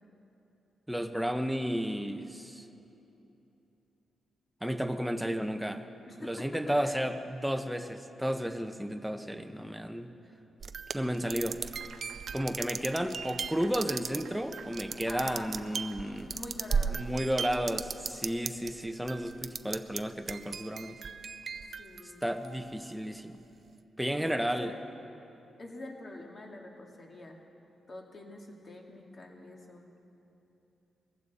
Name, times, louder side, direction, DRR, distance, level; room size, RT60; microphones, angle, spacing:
voice 1, 0.9-2.7 4.6-5.8 6.2-10.1 10.9-11.6 12.3-16.3 16.9-21.0 22.2-23.4 24.0-24.7, equal, 5° right, 7 dB, 0.8 m, -33 dB
voice 2, 6.1-7.0 15.1-15.5 16.2-17.1 21.7-22.2 24.2-24.8 25.6-27.4 27.9-29.8, left 2 dB, 40° left, 1 dB, 2.1 m, -45 dB
sound 1, 10.6-18.7 19.1-20.0 20.3-22.7, right 5 dB, 50° right, 0.5 m, -36 dB
Clapping / Applause, 11.2-16.1, right 6 dB, 80° right, 1.0 m, -54 dB
21.0 x 15.0 x 4.2 m, 2.9 s
cardioid pair, 105°, 0 cm